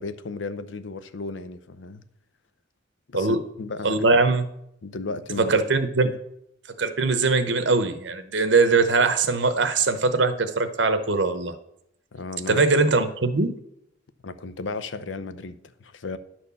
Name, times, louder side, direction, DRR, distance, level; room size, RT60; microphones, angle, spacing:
voice 1, 0.0-2.0 3.1-4.2 4.8-5.6 6.0-6.2 12.1-12.6 14.2-16.2, left 3 dB, 85° left, 0.6 m, -35 dB
voice 2, 3.8-4.4 5.3-6.1 6.8-11.6 12.5-13.6, right 3 dB, 75° right, 0.9 m, -21 dB
10.5 x 4.4 x 6.9 m
head